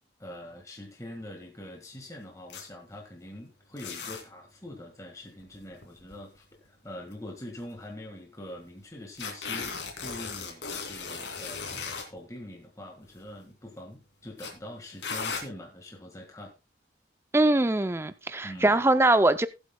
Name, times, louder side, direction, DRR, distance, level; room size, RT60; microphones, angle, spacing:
voice 1, 0.2-16.5 18.4-18.8, left 1 dB, 20° left, 1.7 m, -44 dB
sound 1, 2.5-2.6 3.8-4.2 5.4-6.4 7.1-7.2 7.6-7.7 9.2-12.1 13.0-13.3 14.4-14.5 15.0-15.4, left 5 dB, 90° left, 2.6 m, -36 dB
voice 2, 17.3-19.5, right 2 dB, 15° right, 0.4 m, -22 dB
19.5 x 7.9 x 2.2 m
head